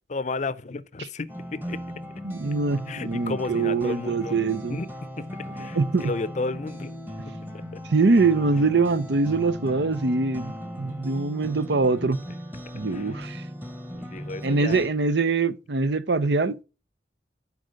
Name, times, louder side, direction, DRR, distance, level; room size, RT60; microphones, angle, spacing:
voice 1, 0.1-1.8 2.9-4.4 4.7-4.9 5.2-6.9 7.3-7.8 12.8-13.1 13.9-14.8, left 3 dB, 40° left, 0.6 m, -33 dB
sound 1, 1.3-14.9, equal, 10° right, 1.1 m, -38 dB
voice 2, 2.2-4.8 5.6-6.1 7.9-12.2 12.7-13.4 14.4-16.6, right 3 dB, 70° right, 0.7 m, -23 dB
10.5 x 4.7 x 6.3 m
head